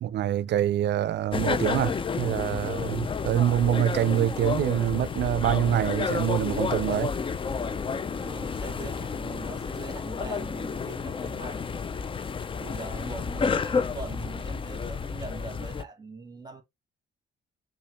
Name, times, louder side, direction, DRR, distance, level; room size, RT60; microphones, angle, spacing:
voice 1, 0.0-7.1, right 12 dB, 60° right, 0.4 m, -25 dB
sound 1, 1.3-15.8, left 5 dB, 25° left, 0.4 m, -31 dB
voice 2, 8.2-11.7 12.6-16.6, right 3 dB, 20° right, 1.6 m, -41 dB
5.5 x 2.5 x 3.2 m
cardioid pair, 90°, 20 cm